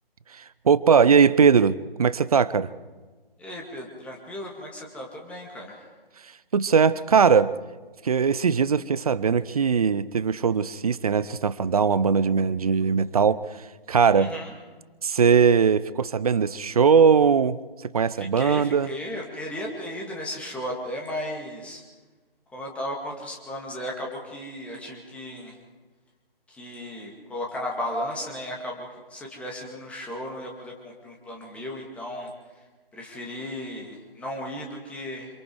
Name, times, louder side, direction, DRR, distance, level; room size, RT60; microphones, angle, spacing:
voice 1, 0.4-2.7 6.5-7.5 8.0-13.4 13.9-14.3 15.0-17.6 17.9-18.9, right 6 dB, 40° right, 17 dB, 0.7 m, -20 dB
voice 2, 3.4-5.8 14.1-14.5 18.2-21.8 22.5-25.5 26.5-32.3 32.9-35.3, left 1 dB, 5° left, -1 dB, 2.2 m, -35 dB
26.5 x 24.0 x 4.8 m, 1.3 s
figure-of-eight pair, 145°, 29 cm